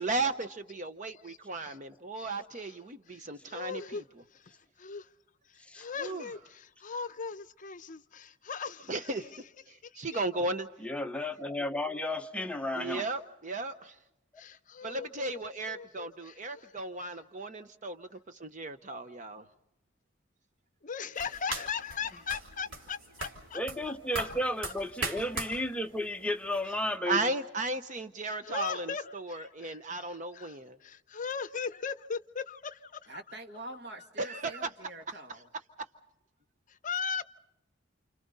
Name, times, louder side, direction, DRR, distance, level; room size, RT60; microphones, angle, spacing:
voice 1, 0.0-3.8 6.0-6.2 8.9-9.2 10.0-10.7 12.8-13.9 14.8-18.1 18.4-19.4 27.1-30.8 34.2-34.7, right 3 dB, 40° right, 0.9 m, -35 dB
voice 2, 2.2-2.8 3.1-4.0 4.8-5.1 5.7-9.4 10.1-10.2 14.4-15.4 15.7-16.7 20.8-23.9 24.6-24.7 25.1-25.2 28.2-33.2 34.0-34.1 36.8-37.2, left 6 dB, 40° left, 0.7 m, -39 dB
voice 3, 10.8-13.1 23.5-27.3, left 1 dB, 5° left, 0.8 m, -33 dB
sound 1, 21.2-27.0, right 2 dB, 85° right, 3.2 m, -41 dB
voice 4, 33.1-35.5, right 1 dB, 65° right, 2.2 m, -45 dB
29.0 x 29.0 x 4.1 m
head